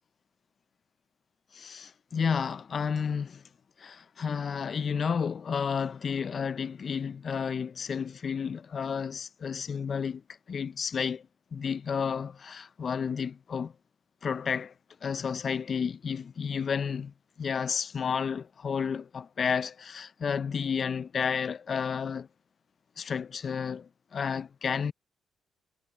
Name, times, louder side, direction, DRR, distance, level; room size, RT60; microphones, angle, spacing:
voice 1, 1.5-3.4 3.8-10.2 10.5-13.7 14.2-14.7 15.0-22.3 23.0-24.9, left 6 dB, 45° left, 0.4 m, -31 dB
cardioid pair, 90°, 0 cm